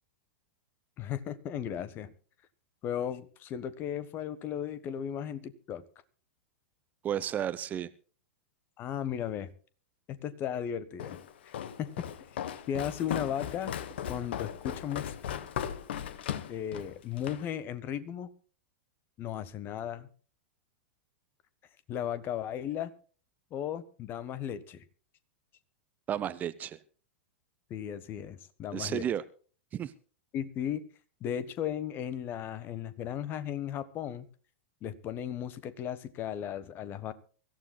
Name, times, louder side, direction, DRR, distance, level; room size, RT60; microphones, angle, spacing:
voice 1, 1.0-2.1 2.8-5.8 8.8-9.5 10.1-11.2 11.8-12.0 12.7-13.7 14.1-15.2 16.5-18.3 19.2-20.1 21.9-22.9 23.5-24.8 27.7-29.1 30.3-30.8 31.2-34.3 34.8-37.1, left 9 dB, 30° left, 15 dB, 1.3 m, -35 dB
voice 2, 7.0-7.9 26.1-26.8 28.7-29.2 29.7-29.9, right 10 dB, 25° right, 16 dB, 0.8 m, -32 dB
Walk footsteps, 11.0-17.5, left 9 dB, 60° left, 1.2 m, -37 dB
24.0 x 15.0 x 2.3 m, 0.39 s
figure-of-eight pair, 95°, 7 cm